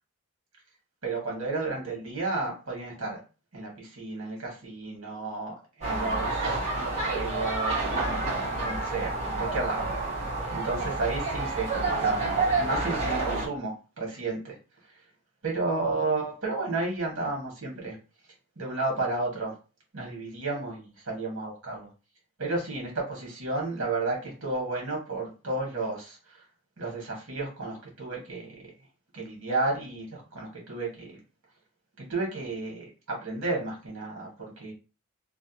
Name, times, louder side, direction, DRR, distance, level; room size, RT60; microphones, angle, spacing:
voice 1, 1.0-3.2 3.5-8.2 8.5-14.6 15.4-18.0 18.6-19.5 19.9-21.9 22.4-26.4 26.8-28.7 29.1-31.2 32.0-34.7, right 3 dB, 60° right, -1 dB, 1.3 m, -32 dB
sound 1, 5.8-13.5, right 3 dB, 30° right, 1.5 m, -29 dB
3.3 x 2.2 x 2.8 m, 0.32 s
head